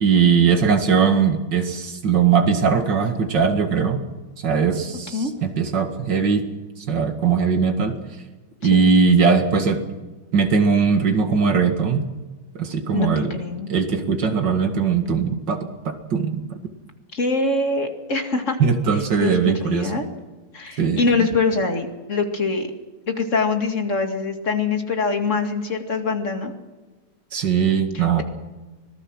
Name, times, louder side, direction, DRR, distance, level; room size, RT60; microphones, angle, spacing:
voice 1, 0.0-4.0 4.4-6.4 6.9-8.0 8.6-9.8 10.3-12.1 12.5-13.3 13.7-16.4 18.6-19.9 20.8-21.0 27.3-28.2, right 6 dB, 85° right, 6 dB, 2.7 m, -19 dB
voice 2, 12.9-13.7 17.1-18.6 19.2-20.1 20.5-22.7 23.1-26.5 27.9-28.2, left 4 dB, 45° left, 4 dB, 2.5 m, -24 dB
25.0 x 19.0 x 6.3 m, 1.2 s
omnidirectional pair, 1.9 m